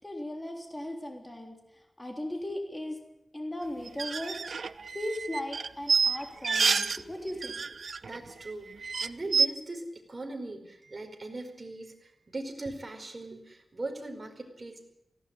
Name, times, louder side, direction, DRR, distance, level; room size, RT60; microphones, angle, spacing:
voice 1, 0.0-1.5 2.0-3.0 3.3-4.4 4.9-7.6, left 1 dB, 15° left, 2 dB, 3.6 m, -37 dB
sound 1, 3.9-7.0 7.3-8.2 8.5-8.6 8.8-9.5, right 5 dB, 70° right, 0.8 m, -28 dB
voice 2, 8.0-14.8, right 2 dB, 35° right, 3 dB, 5.0 m, -40 dB
18.5 x 17.0 x 10.0 m, 0.81 s
wide cardioid pair, 110°, 0 cm